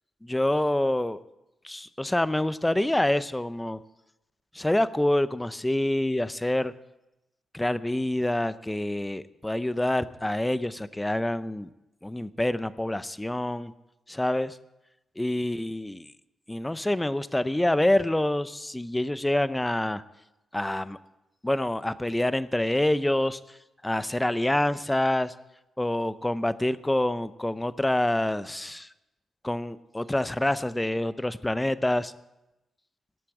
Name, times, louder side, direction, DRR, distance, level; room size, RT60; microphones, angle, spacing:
voice 1, 0.2-1.2 1.6-3.8 4.5-6.7 7.5-11.7 12.0-13.7 14.1-14.6 15.2-16.1 16.5-20.0 20.5-21.0 21.4-23.4 23.8-25.3 25.8-28.9 29.4-32.1, left 1 dB, 10° left, 14 dB, 0.6 m, -26 dB
18.0 x 8.4 x 9.0 m, 0.95 s
wide cardioid pair, 160°, 0 cm